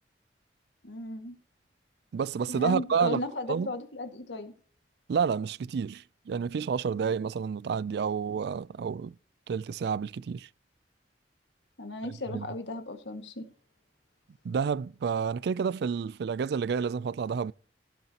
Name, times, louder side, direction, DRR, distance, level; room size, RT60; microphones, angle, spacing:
voice 1, 0.8-1.4 2.5-4.5 11.8-13.4, left 2 dB, 85° left, 1.8 m, -35 dB
voice 2, 2.1-3.2 3.5-3.7 5.1-9.2 9.5-10.5 12.0-12.5 14.4-17.5, right 6 dB, 65° right, 0.3 m, -30 dB
17.5 x 6.9 x 2.9 m
head